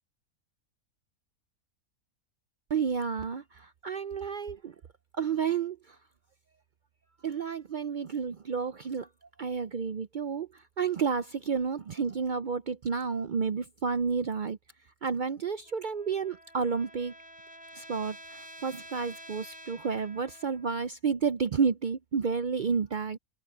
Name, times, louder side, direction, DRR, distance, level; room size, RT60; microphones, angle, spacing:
voice 1, 2.7-4.7 5.2-5.8 7.2-9.1 9.4-10.5 10.8-14.6 15.0-17.1 17.8-23.2, right 6 dB, 65° right, 0.4 m, -31 dB
Trumpet, 15.6-20.8, equal, 5° right, 4.3 m, -49 dB
omnidirectional pair, 1.5 m